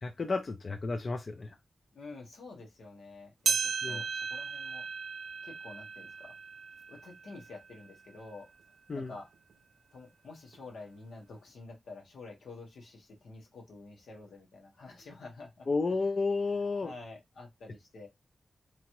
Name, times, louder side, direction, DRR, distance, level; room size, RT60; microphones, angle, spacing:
voice 1, 0.0-1.6 3.8-4.0 8.9-9.1 15.7-16.9, left 3 dB, 55° left, 0.4 m, -32 dB
voice 2, 1.9-4.9 5.4-6.3 6.9-8.5 8.9-9.3 9.9-15.7 16.5-18.1, left 3 dB, 90° left, 1.0 m, -49 dB
sound 1, 3.5-8.1 8.6-8.7 9.5-9.6 10.5-10.6, right 6 dB, 75° right, 0.4 m, -36 dB
2.9 x 2.3 x 3.0 m
cardioid pair, 55°, 0 cm